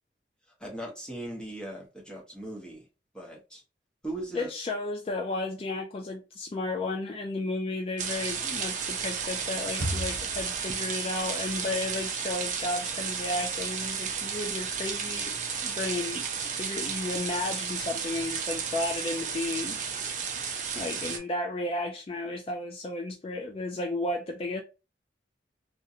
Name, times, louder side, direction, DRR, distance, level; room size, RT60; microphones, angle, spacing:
voice 1, 0.6-2.9 3.1-3.6 4.0-4.5, right 1 dB, 5° left, 0.8 m, -39 dB
voice 2, 4.3-15.4 15.6-16.2 16.5-19.8 20.1-20.2 20.7-24.6, left 2 dB, 30° left, 0.3 m, -33 dB
sound 1, 8.0-21.2, right 6 dB, 45° right, 0.5 m, -33 dB
sound 2, 9.1-11.2, equal, 60° left, 1.1 m, -37 dB
2.5 x 2.1 x 2.7 m
head